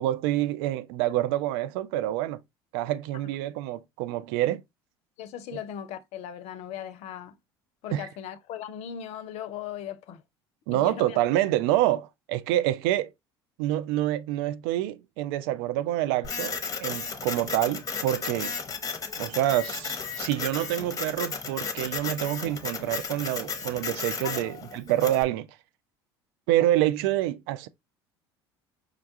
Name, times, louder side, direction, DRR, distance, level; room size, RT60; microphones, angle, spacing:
voice 1, 0.0-2.4 2.7-4.6 7.9-8.1 10.7-13.1 13.6-16.5 16.8-18.6 19.2-25.5 26.5-27.7, right 14 dB, 65° right, 0.4 m, -27 dB
voice 2, 5.2-7.4 7.8-10.2 10.7-11.2 24.2-24.5, left 9 dB, 55° left, 0.5 m, -38 dB
Printer, 16.2-25.2, left 5 dB, 25° left, 0.7 m, -34 dB
4.9 x 2.2 x 2.6 m
hypercardioid pair, 70°, 13 cm